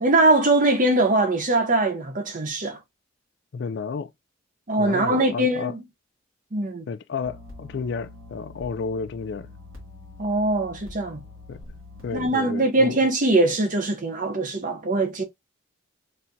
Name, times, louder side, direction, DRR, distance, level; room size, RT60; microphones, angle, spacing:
voice 1, 0.0-2.8 4.7-5.8 6.5-6.8 10.2-11.2 12.1-15.2, right 2 dB, 40° right, 0.7 m, -22 dB
voice 2, 3.5-4.1 4.8-5.7 6.9-9.5 11.5-11.6 12.0-12.9, left 5 dB, 55° left, 0.3 m, -31 dB
sound 1, 7.2-12.3, left 2 dB, 85° right, 2.2 m, -44 dB
4.2 x 3.4 x 2.7 m
head